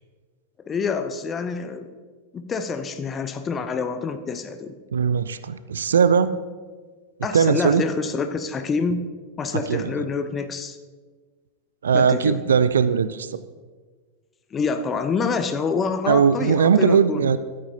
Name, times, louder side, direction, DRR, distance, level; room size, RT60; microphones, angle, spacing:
voice 1, 0.7-2.0 2.3-4.7 7.2-9.1 9.4-10.8 11.9-12.4 14.5-17.2, left 5 dB, 20° left, 9 dB, 0.7 m, -27 dB
voice 2, 4.9-6.3 7.3-7.8 9.5-9.9 11.8-13.4 16.1-17.4, right 6 dB, 70° right, 14 dB, 0.4 m, -19 dB
14.0 x 8.7 x 2.8 m, 1.4 s
figure-of-eight pair, 90°, 0 cm